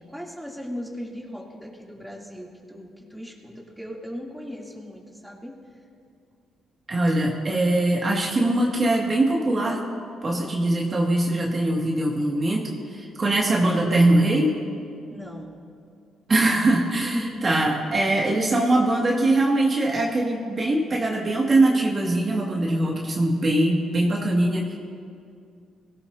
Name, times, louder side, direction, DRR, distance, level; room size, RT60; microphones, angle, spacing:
voice 1, 0.0-5.5 15.1-15.5 17.0-17.4 17.9-18.1, equal, ahead, -3 dB, 2.9 m, -37 dB
voice 2, 6.9-9.8 10.2-14.6 16.3-24.7, right 1 dB, 35° right, -2 dB, 2.1 m, -22 dB
23.5 x 16.5 x 2.8 m, 2.3 s
cardioid pair, 90°, 0 cm